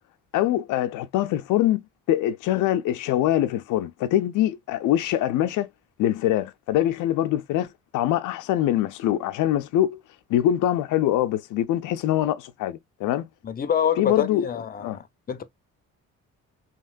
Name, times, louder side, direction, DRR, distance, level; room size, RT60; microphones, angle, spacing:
voice 1, 0.3-1.8 2.1-5.7 6.0-10.0 10.3-13.3 14.0-14.4 14.8-15.0, left 12 dB, 85° left, 0.5 m, -23 dB
voice 2, 13.4-15.4, left 8 dB, 30° left, 0.5 m, -26 dB
2.9 x 2.8 x 2.3 m
cardioid pair, 90°, 30 cm